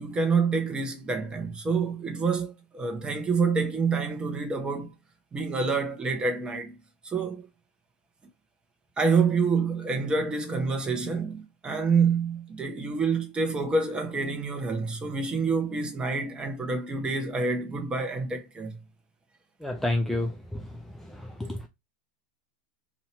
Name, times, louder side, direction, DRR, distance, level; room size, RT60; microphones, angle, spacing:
voice 1, 0.0-4.9 5.3-6.7 7.0-7.5 9.0-18.8, right 4 dB, 20° right, 1.1 m, -27 dB
voice 2, 19.6-20.7 21.0-21.6, left 1 dB, 5° left, 0.4 m, -30 dB
2.9 x 2.8 x 4.2 m
hypercardioid pair, 115°, 5 cm